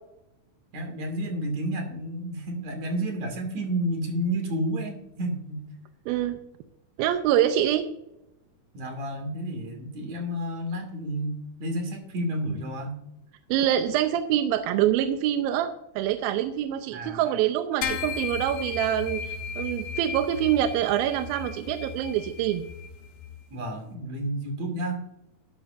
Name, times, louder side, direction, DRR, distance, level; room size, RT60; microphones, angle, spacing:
voice 1, 0.7-5.6 8.7-13.0 16.9-17.2 23.5-25.0, right 1 dB, 55° right, 3 dB, 3.3 m, -31 dB
voice 2, 6.1-6.4 7.0-7.9 13.5-22.6, right 11 dB, 90° right, 8 dB, 2.5 m, -25 dB
sound 1, 17.8-23.4, left 6 dB, 75° left, 2.5 m, -35 dB
12.5 x 11.5 x 2.6 m, 0.84 s
omnidirectional pair, 4.2 m